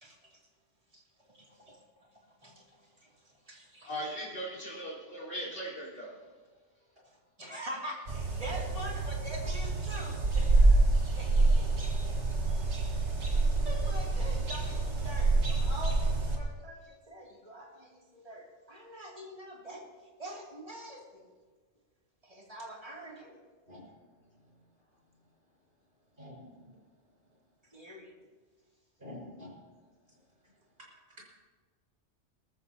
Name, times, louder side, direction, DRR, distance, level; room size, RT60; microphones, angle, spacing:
voice 1, 0.0-0.3 0.9-1.0 1.3-2.1 2.4-2.6 3.0-3.1 3.4-3.9 7.4-10.8 11.2-12.6 13.0-13.3 13.6-19.9 20.2-21.2 22.2-23.4 27.7-28.1, equal, 30° right, -3 dB, 2.9 m, -45 dB
voice 2, 3.8-6.1, equal, 60° left, -8 dB, 4.5 m, -38 dB
sound 1, 8.1-16.4, right 3 dB, 65° right, 2.1 m, -27 dB
voice 3, 26.2-26.8 29.0-29.7 31.1-31.2, left 1 dB, 50° right, -3 dB, 5.6 m, -48 dB
21.0 x 14.0 x 2.9 m, 1.4 s
omnidirectional pair, 1.2 m